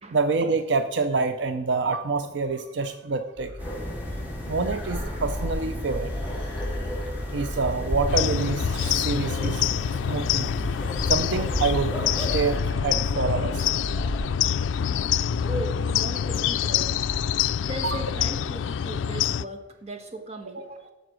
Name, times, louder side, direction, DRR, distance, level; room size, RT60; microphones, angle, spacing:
voice 1, 0.1-3.5 4.5-6.1 7.3-9.7 10.1-10.5 11.1-13.7 17.8-18.0 20.5-20.6, right 4 dB, 70° right, 9 dB, 0.5 m, -27 dB
sound 1, 3.4-18.3, left 1 dB, 25° left, 3.7 m, -37 dB
sound 2, 3.6-12.6, left 1 dB, 10° right, 2.6 m, -32 dB
sound 3, 8.1-19.4, left 9 dB, 90° left, 0.3 m, -26 dB
voice 2, 15.5-17.0 17.6-20.9, right 1 dB, 35° right, 5 dB, 1.2 m, -37 dB
13.0 x 5.1 x 6.2 m, 1.0 s
head